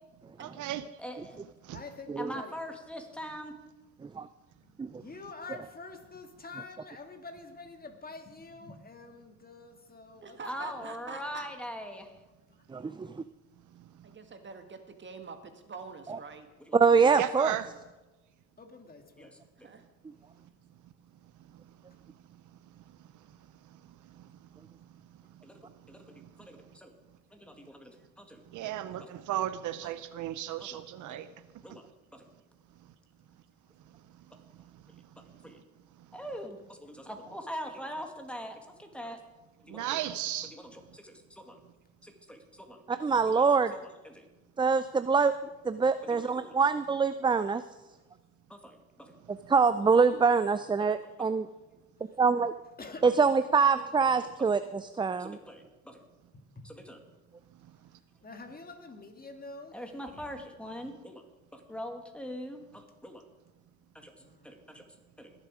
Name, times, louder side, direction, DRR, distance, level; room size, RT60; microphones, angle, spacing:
voice 1, 0.4-0.8 1.6-1.8 17.2-17.7 26.2-26.3 28.5-31.3 31.7-31.8 39.7-40.5, right 13 dB, 80° right, 13 dB, 0.7 m, -35 dB
voice 2, 1.0-1.4 2.2-3.5 10.4-12.2 16.7-16.8 19.2-19.7 25.4-26.9 27.3-28.7 29.0-29.1 30.6-30.8 31.1-31.2 31.6-31.9 32.1-32.3 35.4-35.6 36.1-39.2 39.6-40.1 40.4-41.6 42.0-43.0 43.3-43.5 43.8-44.3 46.0-46.5 48.5-49.2 50.8-51.3 54.0-54.1 55.2-56.0 56.6-57.0 59.7-61.2 61.5-63.2 63.9-64.1 64.4-64.6, equal, 5° left, 4 dB, 2.1 m, -43 dB
voice 3, 1.7-2.6 4.6-4.7 5.0-10.9 16.9-17.1 18.6-19.4 52.8-53.2 56.3-56.7 58.2-60.3 64.2-64.6, left 3 dB, 30° left, 6 dB, 1.8 m, -47 dB
voice 4, 10.2-11.5 14.0-16.5 19.6-19.8, right 4 dB, 40° right, 7 dB, 1.6 m, -45 dB
voice 5, 12.7-13.2 16.1-16.2 16.7-17.5 42.9-43.7 44.6-45.4 45.6-47.6 49.3-51.5 52.2-52.5 53.0-55.4, right 5 dB, 15° right, 12 dB, 0.4 m, -25 dB
20.5 x 7.4 x 4.9 m, 1.1 s
cardioid pair, 90°, 30 cm